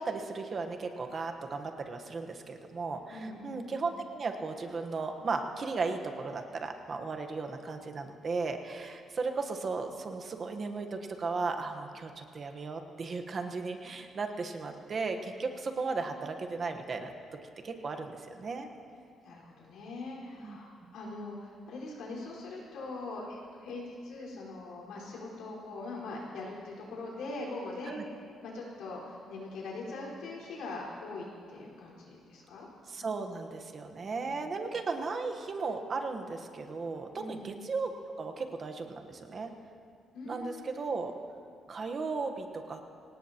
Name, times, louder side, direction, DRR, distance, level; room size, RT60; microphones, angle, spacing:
voice 1, 0.0-17.1 17.6-18.7 20.4-20.9 27.8-28.0 32.9-37.9 38.2-39.5 40.2-41.1 41.7-42.8, right 4 dB, 35° right, 5 dB, 1.1 m, -36 dB
voice 2, 3.1-3.6 19.2-28.0 28.4-32.7 34.2-34.4 37.1-37.5 40.1-40.8, left 2 dB, 85° left, -4 dB, 4.5 m, -42 dB
24.0 x 18.5 x 2.9 m, 2.3 s
cardioid pair, 140°, 0 cm